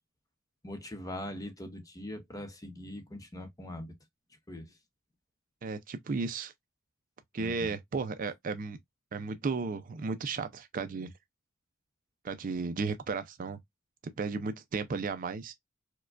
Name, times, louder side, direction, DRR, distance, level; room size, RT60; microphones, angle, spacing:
voice 1, 0.6-3.9 4.5-4.7 7.4-7.7, left 1 dB, 15° left, 0.7 m, -41 dB
voice 2, 5.6-6.5 7.3-8.8 9.1-11.1 12.2-13.6 14.0-15.5, right 4 dB, 40° right, 0.4 m, -34 dB
4.6 x 2.2 x 2.4 m
head